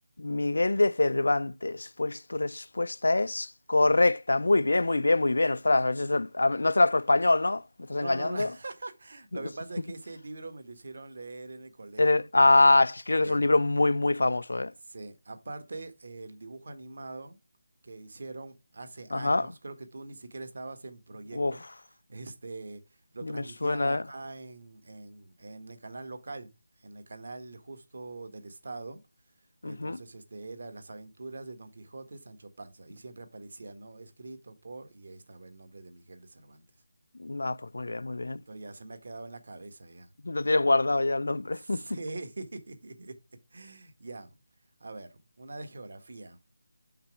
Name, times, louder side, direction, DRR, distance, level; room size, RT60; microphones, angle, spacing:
voice 1, 0.2-7.6 7.9-8.5 12.0-14.7 19.1-19.5 21.3-21.6 23.2-24.0 29.6-30.0 37.2-38.4 40.2-41.8, left 2 dB, 90° left, 0.4 m, -25 dB
voice 2, 7.9-12.3 13.2-13.4 14.8-17.4 17.8-21.6 22.1-22.8 23.1-26.5 26.8-29.0 29.6-36.6 38.5-40.1 41.5-43.1 43.5-44.3 44.8-45.1 45.4-46.4, right 3 dB, 60° right, 1.4 m, -43 dB
5.9 x 5.7 x 4.8 m
figure-of-eight pair, 175°, 0 cm